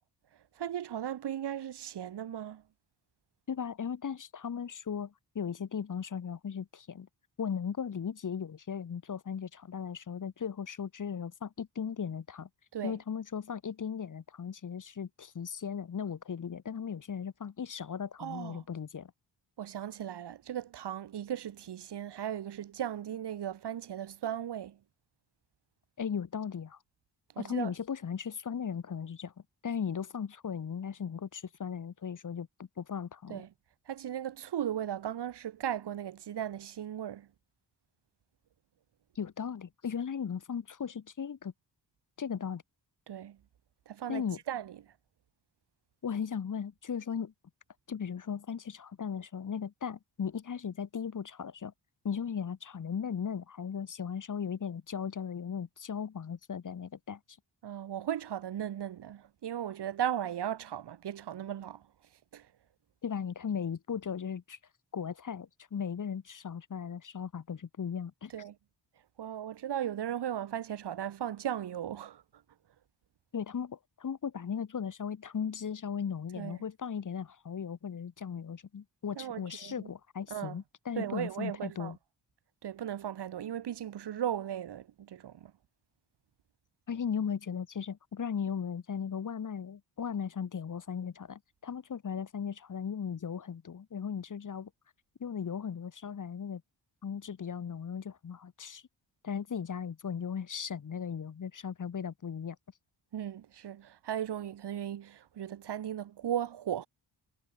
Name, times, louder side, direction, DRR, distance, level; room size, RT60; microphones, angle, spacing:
voice 1, 0.6-2.6 12.7-13.0 18.2-18.6 19.6-24.8 27.4-27.7 33.3-33.5 33.9-37.3 43.1-43.4 43.9-44.7 57.6-61.8 62.3-62.5 68.3-68.5 69.2-72.2 76.4-76.6 79.2-79.9 80.3-80.6 81.0-81.9 82.6-85.5 103.1-106.9, right 10 dB, 65° right, 1.0 m, -37 dB
voice 2, 3.5-7.1 7.4-12.5 12.8-19.1 26.0-26.8 27.4-29.3 29.6-33.4 39.1-41.5 42.2-42.6 44.1-44.4 46.0-47.3 47.9-51.7 52.0-57.2 63.0-64.6 64.9-68.3 73.3-82.0 86.9-94.7 95.2-96.6 97.0-98.8 99.2-102.6, left 7 dB, 45° left, 1.3 m, -37 dB
wide cardioid pair, 150°, 44 cm